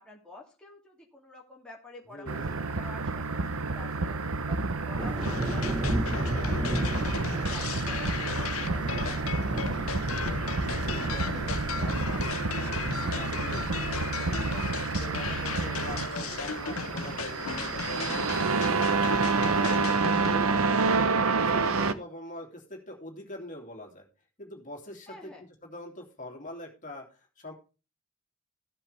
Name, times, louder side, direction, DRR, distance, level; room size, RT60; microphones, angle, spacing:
voice 1, 0.0-5.9 6.1-10.2 15.1-15.4 19.4-19.6 25.1-25.4, left 1 dB, 5° left, -3 dB, 2.8 m, -50 dB
voice 2, 2.1-2.6 10.7-14.4 14.9-18.5 18.9-21.1 21.4-24.1 24.4-27.5, left 1 dB, 35° left, 1 dB, 3.0 m, -44 dB
sound 1, 2.3-21.9, right 4 dB, 80° right, 1.0 m, -29 dB
sound 2, 5.0-19.9, right 1 dB, 20° right, 1.3 m, -36 dB
sound 3, 5.2-20.4, left 6 dB, 80° left, 0.8 m, -37 dB
15.5 x 7.9 x 3.5 m, 0.33 s
head